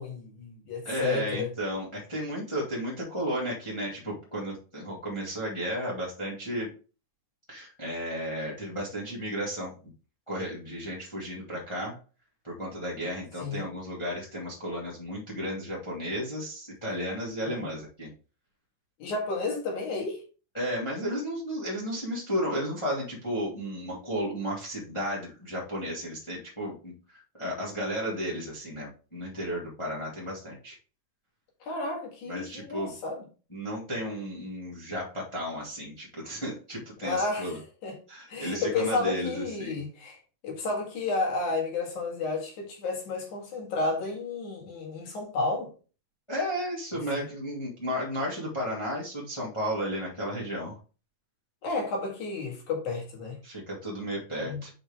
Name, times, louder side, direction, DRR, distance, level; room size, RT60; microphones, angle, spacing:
voice 1, 0.0-1.5 13.4-13.7 17.4-17.7 19.0-20.2 31.6-33.3 37.0-38.0 38.3-40.2 40.4-45.7 47.2-47.3 51.6-53.4 54.5-54.6, left 3 dB, 60° left, 3.1 m, -32 dB
voice 2, 0.8-6.7 7.5-9.7 10.3-11.9 12.4-18.1 20.5-30.8 32.3-32.9 33.5-37.6 38.1-39.8 46.3-50.8 53.4-54.7, equal, 15° left, 1.1 m, -33 dB
5.9 x 5.3 x 3.5 m
omnidirectional pair, 4.1 m